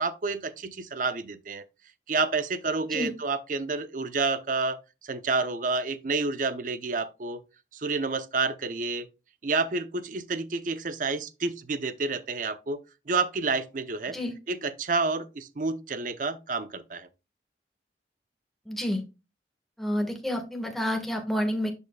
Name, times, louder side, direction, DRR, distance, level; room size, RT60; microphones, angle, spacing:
voice 1, 0.0-1.6 2.1-4.8 5.0-7.4 7.7-9.1 9.4-14.2 14.5-17.1, right 3 dB, 45° right, 0.6 m, -29 dB
voice 2, 18.7-19.0 19.8-21.7, left 1 dB, ahead, 1.4 m, -29 dB
10.5 x 5.4 x 2.2 m
head